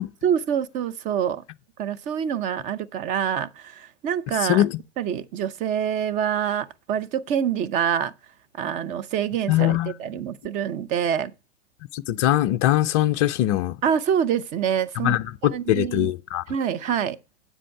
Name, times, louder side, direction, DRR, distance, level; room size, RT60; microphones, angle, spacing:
voice 1, 0.2-1.4 1.8-4.7 5.0-8.1 8.6-11.3 13.8-16.1 16.5-17.2, right 8 dB, 20° right, 0.6 m, -26 dB
voice 2, 9.5-9.9 11.9-13.7 15.0-16.4, left 14 dB, 30° left, 0.4 m, -22 dB
9.7 x 7.6 x 4.6 m
hypercardioid pair, 115°, 35 cm